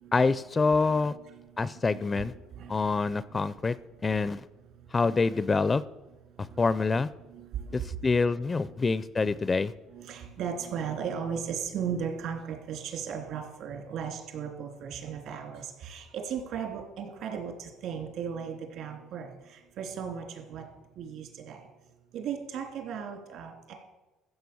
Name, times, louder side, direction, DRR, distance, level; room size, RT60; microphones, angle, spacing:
voice 1, 0.1-1.2 1.6-2.3 2.7-3.8 4.0-4.4 4.9-5.8 6.6-7.1 7.7-9.7, left 4 dB, 20° left, 17 dB, 0.4 m, -26 dB
voice 2, 0.6-1.5 1.9-2.8 7.3-8.1 9.9-20.6 21.0-21.6 22.1-23.7, right 7 dB, 65° right, 3 dB, 3.2 m, -36 dB
14.5 x 7.5 x 7.0 m, 1.1 s
cardioid pair, 115°, 0 cm